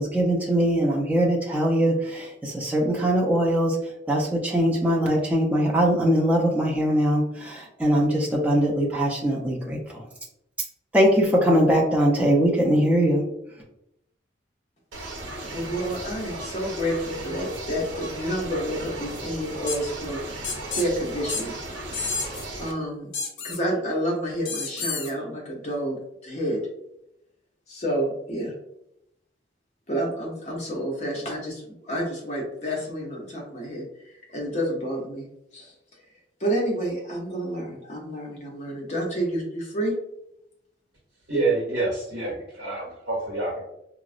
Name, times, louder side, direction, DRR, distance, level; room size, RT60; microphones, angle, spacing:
voice 1, 0.0-10.1 10.9-13.3, equal, 10° right, -2 dB, 0.4 m, -22 dB
sound 1, 14.9-22.7, right 2 dB, 85° right, 0.6 m, -36 dB
voice 2, 15.5-21.6 22.5-23.1 23.4-26.6 27.7-28.6 29.9-35.3 35.5-35.7 36.4-40.0, equal, 35° left, -1 dB, 0.6 m, -29 dB
sound 2, 19.7-19.8 20.4-20.9 21.3-21.4 21.9-22.5 23.1-23.6 24.5-25.1, left 4 dB, 80° left, 0.5 m, -30 dB
voice 3, 41.3-43.6, right 3 dB, 65° right, -5 dB, 0.9 m, -27 dB
3.7 x 2.0 x 2.4 m, 0.81 s
head